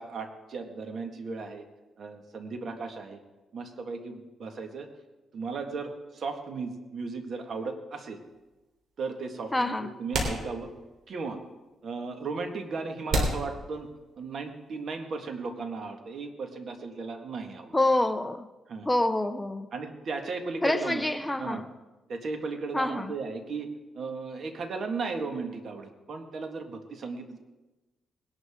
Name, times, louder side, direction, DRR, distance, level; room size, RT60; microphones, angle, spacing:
voice 1, 0.0-1.7 2.0-3.2 3.5-4.9 5.3-8.2 9.0-10.7 11.1-11.4 11.8-13.9 14.2-17.7 18.7-18.9 19.7-21.0 21.4-21.6 22.1-23.7 24.0-27.4, right 4 dB, 55° right, 1.7 m, -36 dB
sound 1, 8.2-8.3 9.5-9.6 10.1-11.0 11.4-11.5 12.2-12.3 13.1-14.3, right 1 dB, 75° right, 3.4 m, -31 dB
voice 2, 9.5-9.9 17.7-18.5 18.9-19.7 20.6-21.7 22.7-23.1, left 1 dB, 10° left, 0.6 m, -27 dB
20.0 x 11.5 x 3.7 m
cardioid pair, 105°, 0 cm